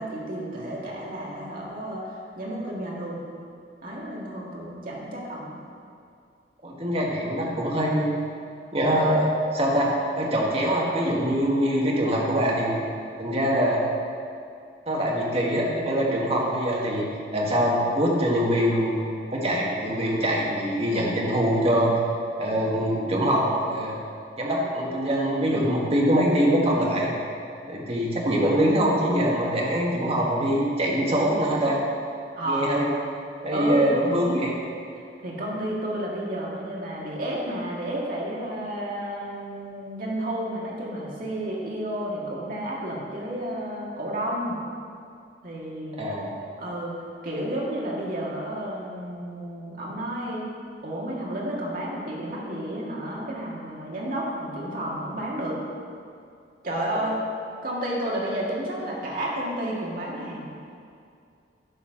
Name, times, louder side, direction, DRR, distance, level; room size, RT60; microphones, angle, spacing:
voice 1, 0.0-2.1 2.4-3.2 3.8-5.5 32.4-32.7 33.5-34.0 35.2-44.6 45.4-46.0 46.6-46.9 47.2-50.5 50.8-55.6 56.6-57.2 57.6-60.5, right 1 dB, 55° right, -4 dB, 1.8 m, -31 dB
voice 2, 6.6-8.1 8.7-9.3 9.5-9.9 10.2-12.8 13.2-13.8 14.9-17.1 17.3-19.0 19.3-21.9 22.4-24.0 24.4-27.1 27.7-31.8 32.5-32.9 33.4-34.5 46.0-46.3 56.9-57.2, equal, 35° right, -3 dB, 1.4 m, -23 dB
9.9 x 4.2 x 6.2 m, 2.4 s
head